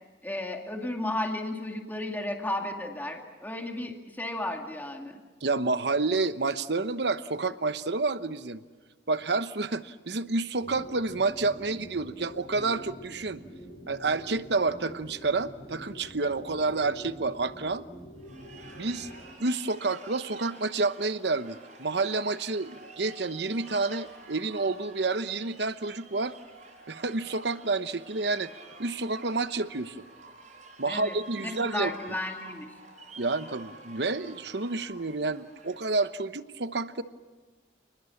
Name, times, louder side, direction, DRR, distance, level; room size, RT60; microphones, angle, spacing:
voice 1, 0.2-5.2 30.9-32.7, left 1 dB, 10° left, 2 dB, 2.3 m, -34 dB
voice 2, 5.4-8.6 9.1-13.4 13.9-17.8 18.7-19.1 19.4-26.3 26.9-28.5 28.8-30.0 30.8-31.9 33.2-37.0, right 3 dB, 70° right, 12 dB, 1.0 m, -29 dB
sound 1, 10.6-19.3, equal, 80° left, 4.6 m, -46 dB
sound 2, 18.2-36.2, right 2 dB, 45° right, 7.1 m, -50 dB
30.0 x 20.0 x 7.2 m, 1.4 s
head